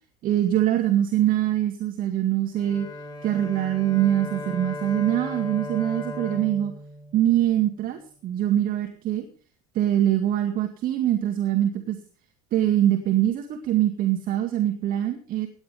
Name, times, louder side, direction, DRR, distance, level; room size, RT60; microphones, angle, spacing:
voice 1, 0.2-2.9 3.2-6.7 7.1-9.3 9.7-12.0 12.5-15.5, right 12 dB, 45° right, 6 dB, 2.2 m, -23 dB
Bowed string instrument, 2.6-8.0, left 1 dB, 20° left, 3.5 m, -37 dB
17.5 x 11.5 x 5.2 m, 0.41 s
hypercardioid pair, 80°, 19 cm